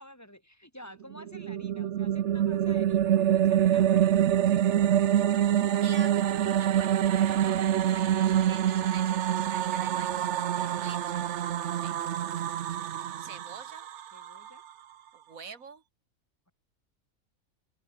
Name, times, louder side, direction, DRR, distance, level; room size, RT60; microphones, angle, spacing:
voice 1, 0.0-4.8 5.5-5.8 9.7-10.0 10.5-10.9 11.5-12.0 13.4-13.5 14.1-14.7, equal, 10° left, 5.8 m, -51 dB
sound 1, 1.1-14.5, right 10 dB, 60° right, 1.0 m, -26 dB
voice 2, 6.6-10.3 10.8-11.2 11.7-11.9 13.2-13.9 15.1-15.8, right 5 dB, 80° right, 2.4 m, -46 dB
open air
omnidirectional pair, 1.4 m